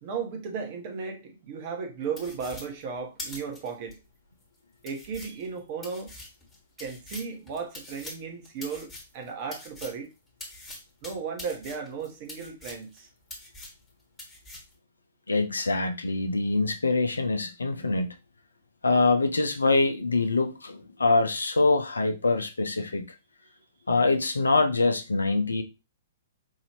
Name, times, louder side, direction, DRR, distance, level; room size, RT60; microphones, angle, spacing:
voice 1, 0.0-4.0 4.8-6.1 6.8-8.9 9.1-10.1 11.0-13.1, right 5 dB, 40° right, 1.1 m, -35 dB
sound 1, 2.2-3.9 4.4-4.5 4.8-10.0 10.4-13.0 13.3-13.9 14.2-14.7, left 2 dB, 10° left, 1.4 m, -43 dB
voice 2, 15.3-18.1 18.8-23.0 23.9-25.6, left 3 dB, 80° left, 0.6 m, -24 dB
4.7 x 2.7 x 2.9 m
figure-of-eight pair, 115°, 0 cm